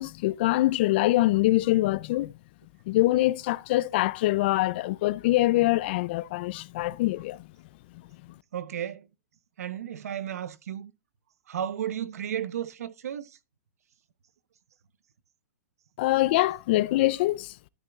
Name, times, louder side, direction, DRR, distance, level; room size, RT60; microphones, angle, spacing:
voice 1, 0.0-2.3 2.9-7.5 16.0-17.5, left 17 dB, 45° left, 0.4 m, -24 dB
voice 2, 8.5-9.1 9.6-10.9 11.5-13.4, right 10 dB, 75° right, 0.9 m, -33 dB
12.5 x 6.9 x 2.4 m
hypercardioid pair, 150°, 8 cm